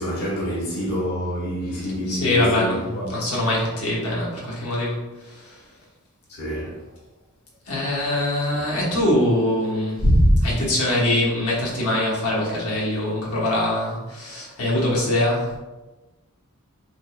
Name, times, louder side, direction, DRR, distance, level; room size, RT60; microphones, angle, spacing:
voice 1, 0.0-3.2 6.3-6.9, equal, 50° left, 1.0 m, -27 dB
voice 2, 2.1-2.8 3.1-5.6 7.7-15.6, left 1 dB, 75° left, 1.1 m, -22 dB
3.6 x 3.5 x 2.3 m
head